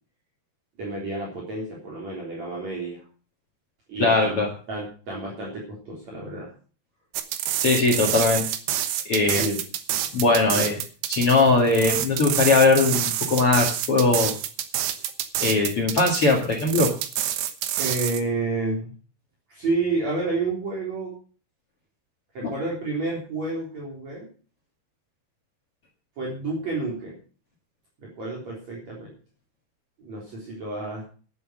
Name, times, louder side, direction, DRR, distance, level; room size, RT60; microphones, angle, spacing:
voice 1, 0.8-3.0 3.9-6.5 9.3-9.6 10.5-10.7 17.8-18.9 19.5-21.2 22.3-24.3 26.2-27.2 28.0-29.1 30.0-31.0, right 3 dB, 45° right, -4 dB, 4.7 m, -30 dB
voice 2, 4.0-4.5 7.6-8.4 9.1-9.4 10.1-10.8 11.1-14.3 15.4-16.9 22.4-22.5, left 3 dB, 45° left, 2 dB, 2.3 m, -20 dB
sound 1, 7.1-18.2, right 11 dB, 80° right, 3.1 m, -27 dB
11.0 x 10.5 x 6.3 m, 0.40 s
omnidirectional pair, 4.6 m